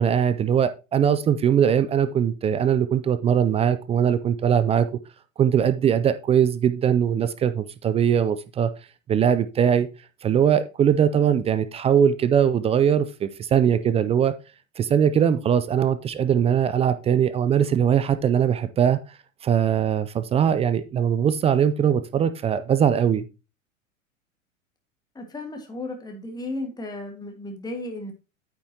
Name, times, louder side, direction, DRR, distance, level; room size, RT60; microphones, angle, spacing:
voice 1, 0.0-4.9 5.4-8.7 9.1-9.9 10.2-14.3 14.8-19.0 19.4-23.3, right 8 dB, 15° right, 12 dB, 0.3 m, -21 dB
voice 2, 25.2-28.1, left 2 dB, 10° left, 3 dB, 1.6 m, -34 dB
9.1 x 7.1 x 2.8 m, 0.29 s
hypercardioid pair, 95°, 40 cm